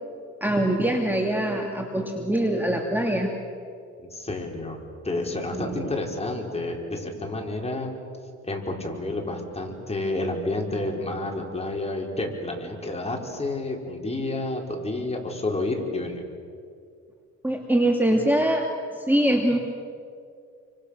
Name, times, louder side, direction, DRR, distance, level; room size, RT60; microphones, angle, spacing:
voice 1, 0.4-3.3 5.5-5.9 17.4-18.7 18.9-19.6, right 1 dB, 5° right, 1 dB, 2.6 m, -23 dB
voice 2, 4.0-4.8 5.0-7.9 8.4-16.2, left 2 dB, 20° left, 0 dB, 5.1 m, -30 dB
29.5 x 25.5 x 6.8 m, 2.3 s
cardioid pair, 90°, 30 cm